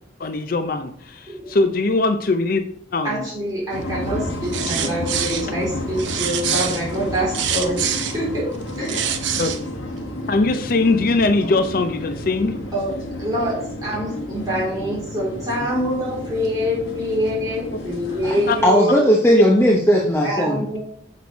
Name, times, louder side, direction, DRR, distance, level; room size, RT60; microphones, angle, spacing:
voice 1, 0.2-2.6 2.9-3.2 9.4-9.5 10.3-12.6 18.5-18.6 19.3-19.5, left 3 dB, 50° left, 9 dB, 0.4 m, -21 dB
voice 2, 3.0-9.0 12.7-19.0 20.2-20.8, equal, 20° right, -6 dB, 3.5 m, -25 dB
sound 1, 3.7-18.6, left 1 dB, 90° left, 1.5 m, -31 dB
sound 2, 4.4-5.5 6.0-8.2 8.7-9.6, right 9 dB, 75° right, 0.7 m, -25 dB
voice 3, 18.6-20.7, equal, 15° left, -1 dB, 0.7 m, -16 dB
6.9 x 4.7 x 5.1 m, 0.64 s
head